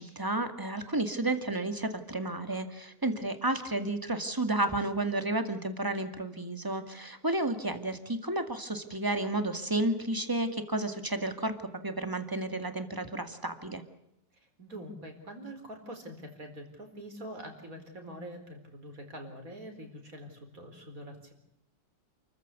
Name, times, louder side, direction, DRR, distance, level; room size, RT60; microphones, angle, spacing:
voice 1, 0.0-11.5 11.8-13.8, right 2 dB, 10° right, 8 dB, 1.9 m, -32 dB
voice 2, 14.6-21.3, equal, 50° right, 5 dB, 4.7 m, -44 dB
29.0 x 14.5 x 8.3 m, 0.84 s
omnidirectional pair, 1.9 m